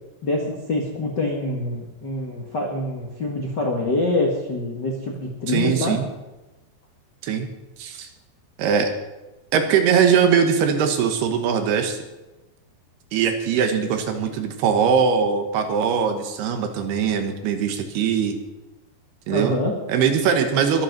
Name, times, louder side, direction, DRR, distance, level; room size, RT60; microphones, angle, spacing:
voice 1, 0.2-6.0 19.3-19.7, left 2 dB, 60° left, 0 dB, 1.1 m, -25 dB
voice 2, 5.5-6.1 7.2-7.5 7.8-8.1 8.6-8.9 9.5-12.0 13.1-18.4 19.3-19.6 19.9-20.8, right 7 dB, 70° right, 6 dB, 3.2 m, -21 dB
22.5 x 8.0 x 6.1 m, 1.0 s
omnidirectional pair, 5.0 m